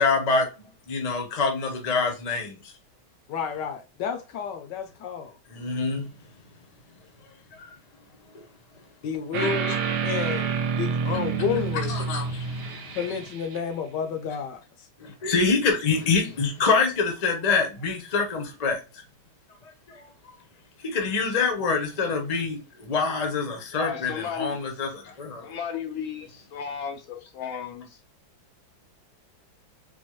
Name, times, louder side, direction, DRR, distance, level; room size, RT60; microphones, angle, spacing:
voice 1, 0.0-2.6 5.5-6.1 9.4-9.7 11.9-13.0 15.0-18.8 20.8-25.4, left 4 dB, 45° left, 0.5 m, -26 dB
voice 2, 3.3-5.4 9.0-12.0 12.9-14.6, left 7 dB, 70° left, 1.1 m, -31 dB
sound 1, 9.3-13.6, right 6 dB, 80° right, 1.4 m, -28 dB
voice 3, 23.7-24.6 25.4-28.0, left 7 dB, 90° left, 0.7 m, -34 dB
4.3 x 2.2 x 3.0 m
omnidirectional pair, 2.2 m